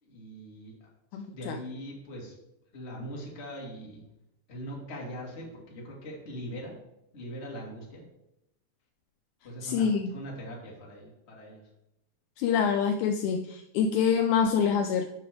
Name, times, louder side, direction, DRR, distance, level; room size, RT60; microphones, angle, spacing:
voice 1, 0.0-0.7 1.3-2.3 2.7-4.0 4.5-6.7 7.1-8.0 9.4-11.6, equal, 25° left, -2 dB, 1.5 m, -41 dB
voice 2, 1.1-1.6 9.6-10.1 12.4-15.1, left 7 dB, 80° left, 6 dB, 1.8 m, -26 dB
10.0 x 5.9 x 3.5 m, 0.87 s
omnidirectional pair, 3.8 m